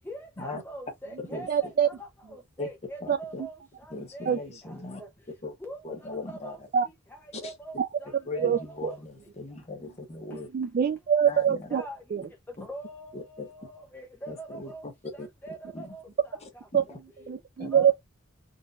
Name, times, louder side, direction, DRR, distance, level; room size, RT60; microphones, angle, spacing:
voice 1, 0.1-3.6 4.1-4.4 4.7-5.1 5.6-5.8 6.3-6.6 7.4-9.0 11.7-12.0 12.6-14.8 15.4-16.0 17.7-17.9, right 1 dB, 10° left, 0.5 m, -43 dB
voice 2, 1.5-1.9 3.1-3.2 4.3-4.4 6.7-6.9 7.8-7.9 8.4-8.9 10.5-11.8 12.1-12.2 16.7-16.8 17.3-17.9, right 8 dB, 45° right, 0.3 m, -24 dB
voice 3, 3.0-3.4 3.9-5.0 5.4-5.5 5.8-6.6 7.4-7.5 8.3-10.5 11.3-11.7 12.6-12.7 13.1-13.5 14.3-14.7 15.2-15.3 15.7-15.9 16.7-16.8 17.6-17.9, left 2 dB, 30° left, 0.9 m, -39 dB
3.9 x 2.4 x 2.3 m
head